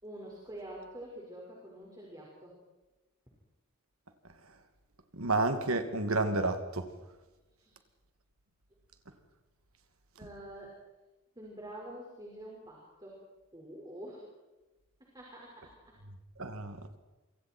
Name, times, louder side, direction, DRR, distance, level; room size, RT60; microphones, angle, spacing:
voice 1, 0.0-2.5 7.6-7.7 10.2-10.8 11.4-13.2 13.5-14.2 15.0-16.0, right 1 dB, 20° right, -3 dB, 5.3 m, -47 dB
voice 2, 5.1-6.9 16.4-16.8, right 2 dB, 80° right, 7 dB, 2.5 m, -30 dB
28.0 x 25.5 x 4.6 m, 1.1 s
head